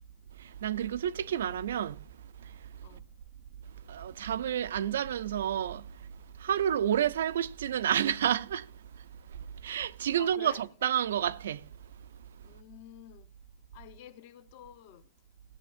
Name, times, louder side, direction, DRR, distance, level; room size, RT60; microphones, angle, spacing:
voice 1, 0.3-2.1 2.4-3.0 3.8-6.1 6.4-11.9, right 10 dB, 70° right, 0.4 m, -31 dB
voice 2, 10.2-10.6 12.4-13.3 13.7-15.1, left 11 dB, 35° left, 0.6 m, -50 dB
16.0 x 8.1 x 2.4 m
supercardioid pair, 170°, 0 cm